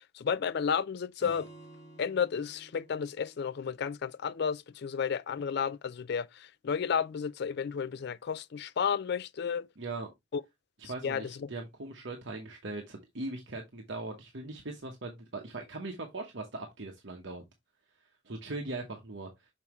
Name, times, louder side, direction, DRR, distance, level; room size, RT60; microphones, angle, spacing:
voice 1, 0.1-1.5 2.0-9.7 10.3-10.4 11.0-11.5, left 7 dB, 55° left, 0.4 m, -32 dB
Acoustic guitar / Strum, 1.2-4.7, right 1 dB, 15° left, 2.5 m, -53 dB
voice 2, 9.8-10.1 10.8-17.4 18.2-19.3, right 2 dB, 60° right, 1.0 m, -40 dB
6.0 x 5.5 x 3.0 m
head